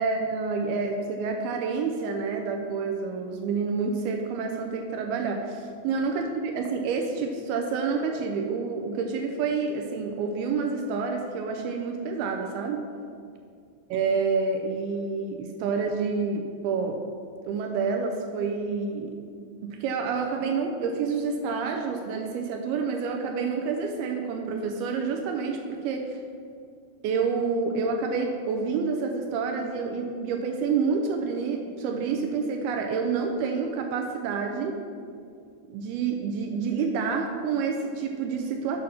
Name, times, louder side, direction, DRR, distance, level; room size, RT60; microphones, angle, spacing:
voice 1, 0.0-12.8 13.9-17.0 17.4-19.2 19.6-26.2 27.0-34.8 35.6-38.8, right 5 dB, 85° right, 3 dB, 2.2 m, -28 dB
8.4 x 5.9 x 6.3 m, 2.3 s
omnidirectional pair, 5.1 m